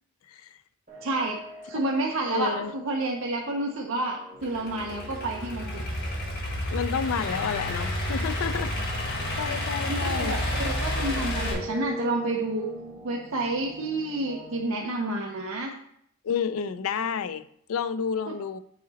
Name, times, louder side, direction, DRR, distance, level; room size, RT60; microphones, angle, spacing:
sound 1, 0.9-14.6, equal, 35° right, 1.9 m, -43 dB
voice 1, 1.0-1.4 1.7-5.8 9.8-12.7 13.0-15.7, right 2 dB, 60° right, 0.7 m, -29 dB
voice 2, 2.3-2.7 6.7-9.0 9.4-10.4 16.2-18.6, left 6 dB, 70° left, 0.4 m, -30 dB
Idling / Accelerating revving vroom, 4.4-11.5, left 1 dB, 45° left, 1.5 m, -30 dB
7.7 x 4.0 x 4.0 m
head